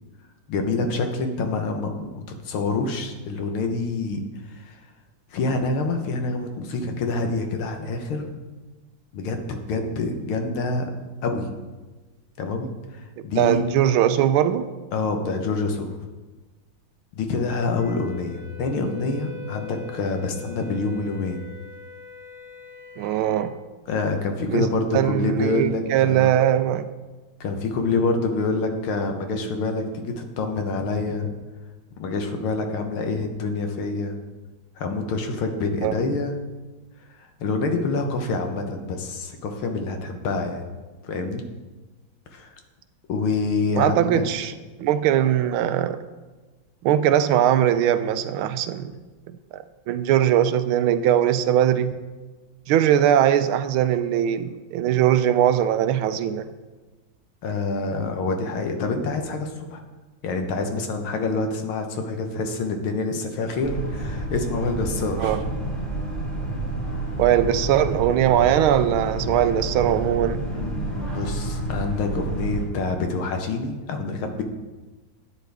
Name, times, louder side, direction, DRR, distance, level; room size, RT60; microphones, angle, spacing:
voice 1, 0.5-4.2 4.5-4.8 5.3-8.4 9.1-10.9 11.2-11.5 12.4-13.6 14.9-16.0 17.1-21.4 23.9-26.3 27.4-31.3 32.0-34.2 34.8-36.3 37.4-40.6 41.0-41.4 42.3-42.5 43.1-44.2 57.4-59.8 60.2-65.4 70.5-74.4, left 3 dB, 90° left, 5 dB, 1.9 m, -26 dB
voice 2, 13.4-14.7 23.0-23.5 24.5-24.7 24.9-26.9 35.8-36.0 43.8-44.5 44.8-46.0 46.8-49.0 49.5-51.9 52.7-56.4 65.2-65.4 67.2-70.5, right 10 dB, 90° right, 12 dB, 1.4 m, -20 dB
Wind instrument woodwind instrument, 17.8-23.5, left 7 dB, 70° right, 3.1 m, -42 dB
Boat Water vehicle, 63.6-72.6, right 1 dB, 20° right, 3.6 m, -29 dB
11.5 x 9.0 x 3.5 m, 1.3 s
omnidirectional pair, 2.2 m